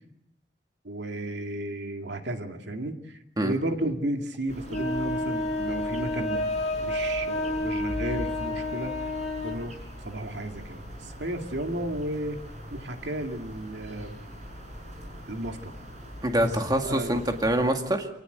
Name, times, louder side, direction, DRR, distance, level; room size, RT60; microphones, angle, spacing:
voice 1, 0.8-6.5 6.8-9.0 9.4-9.7 10.0-12.4 12.7-14.2 15.3-15.7 16.4-16.5 16.8-17.2, right 1 dB, 80° right, 5 dB, 2.3 m, -33 dB
sound 1, 4.5-17.7, equal, 40° right, 7.2 m, -42 dB
sound 2, 4.7-9.6, left 1 dB, 35° left, 5.6 m, -30 dB
voice 2, 16.2-18.1, right 1 dB, 20° right, 4 dB, 2.1 m, -25 dB
27.0 x 19.0 x 8.0 m, 0.81 s
head